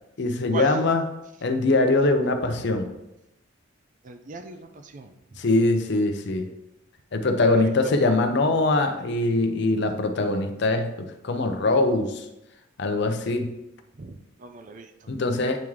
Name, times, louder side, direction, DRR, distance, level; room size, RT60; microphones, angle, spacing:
voice 1, 0.2-1.0 1.4-2.9 5.4-6.5 7.1-12.3 12.8-13.5 15.1-15.6, left 2 dB, 60° left, 7 dB, 0.6 m, -22 dB
voice 2, 4.0-5.1 7.4-7.9 13.9-14.9, right 3 dB, 40° right, 7 dB, 0.4 m, -38 dB
8.5 x 3.6 x 3.1 m, 0.90 s
head